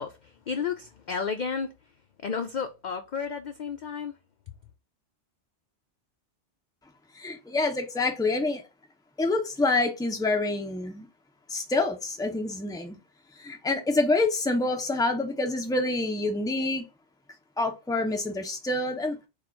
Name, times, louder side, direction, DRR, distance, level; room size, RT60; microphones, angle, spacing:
voice 1, 0.0-1.7 2.2-4.1, left 6 dB, 60° left, 0.5 m, -32 dB
voice 2, 7.1-8.6 9.2-11.1 11.5-13.0 13.4-16.9 17.6-19.3, left 2 dB, 5° left, 0.5 m, -27 dB
4.3 x 2.4 x 4.3 m
omnidirectional pair, 1.2 m